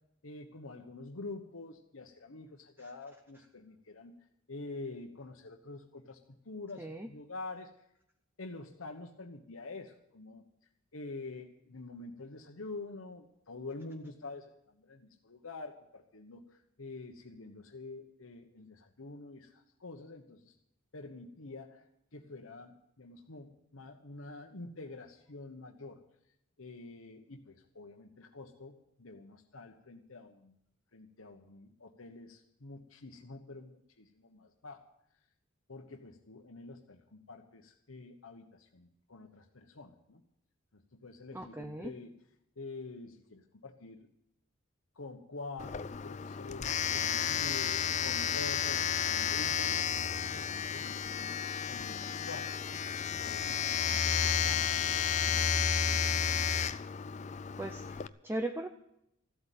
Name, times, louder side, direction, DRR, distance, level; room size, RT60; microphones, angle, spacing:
voice 1, 0.2-4.1 4.5-7.7 8.4-10.4 10.9-20.5 20.9-21.8 22.1-26.0 26.6-30.6 30.9-34.8 35.7-40.2 40.7-42.1 42.6-44.1 44.9-52.5 53.2-55.5, left 3 dB, 85° left, 3 dB, 1.2 m, -47 dB
voice 2, 6.8-7.1 41.3-41.9 57.6-58.7, right 1 dB, 10° right, 7 dB, 0.6 m, -38 dB
Domestic sounds home sounds, 45.6-58.1, left 7 dB, 35° left, 0.4 m, -32 dB
14.5 x 8.2 x 9.2 m, 0.79 s
head